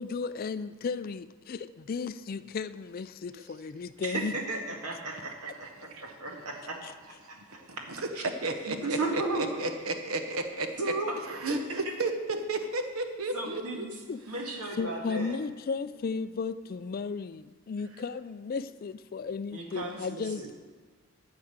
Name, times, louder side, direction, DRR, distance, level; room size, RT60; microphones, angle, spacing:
voice 1, 0.0-4.3 6.8-6.9 14.1-14.2 14.8-20.5, left 5 dB, 40° left, 13 dB, 0.3 m, -35 dB
voice 2, 4.0-5.5 6.2-6.3 6.6-6.8 7.1-7.6 8.0-8.2 8.7-9.5 10.8-11.9 13.3-13.9 14.3-15.4 19.5-20.5, right 2 dB, 90° right, 1 dB, 2.0 m, -35 dB
voice 3, 7.4-8.1 8.4-9.2 9.6-10.9 11.3-12.1 12.5-13.9 14.3-14.5, right 2 dB, 70° right, 6 dB, 1.0 m, -33 dB
13.0 x 4.9 x 8.1 m, 1.5 s
head